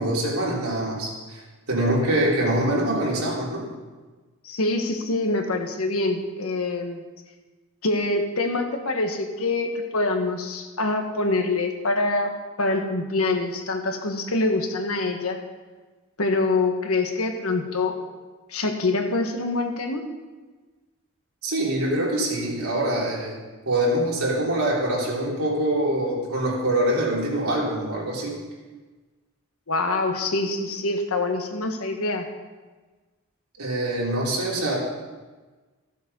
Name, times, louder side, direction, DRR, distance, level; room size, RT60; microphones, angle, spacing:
voice 1, 0.0-3.7 21.4-23.3 23.6-28.4 33.6-34.8, right 1 dB, 85° right, -4 dB, 3.4 m, -24 dB
voice 2, 4.4-7.0 7.8-12.3 12.6-15.4 16.2-17.9 18.5-20.1 29.7-32.2, left 2 dB, 85° left, 4 dB, 1.4 m, -25 dB
14.5 x 7.4 x 5.4 m, 1.3 s
head